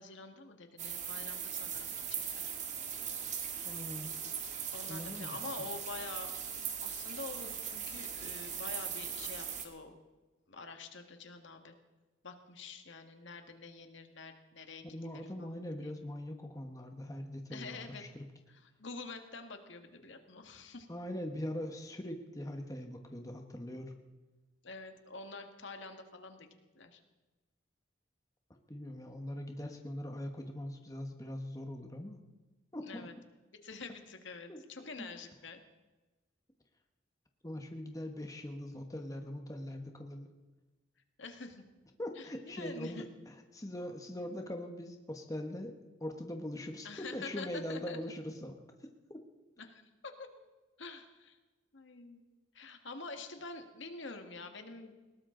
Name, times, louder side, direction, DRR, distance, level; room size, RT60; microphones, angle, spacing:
voice 1, 0.0-2.5 3.2-3.5 4.7-6.3 6.7-10.0 10.5-11.7 12.2-15.5 17.5-18.1 18.5-20.9 24.6-26.5 26.7-27.0 32.8-33.1 33.6-35.6 41.2-41.6 42.2-43.1 46.8-48.0 49.6-50.3 50.8-51.4 51.7-52.2 52.5-54.9, left 3 dB, 70° left, 6 dB, 1.8 m, -47 dB
sound 1, 0.8-9.6, right 8 dB, 35° right, 1.9 m, -39 dB
voice 2, 3.6-4.1 4.9-5.5 14.9-18.3 20.9-23.9 28.7-32.2 32.7-33.1 34.5-34.6 35.0-35.1 37.4-40.3 42.0-48.6 49.1-49.2, left 1 dB, 15° left, 4 dB, 1.2 m, -42 dB
20.5 x 18.5 x 3.9 m, 1.2 s
head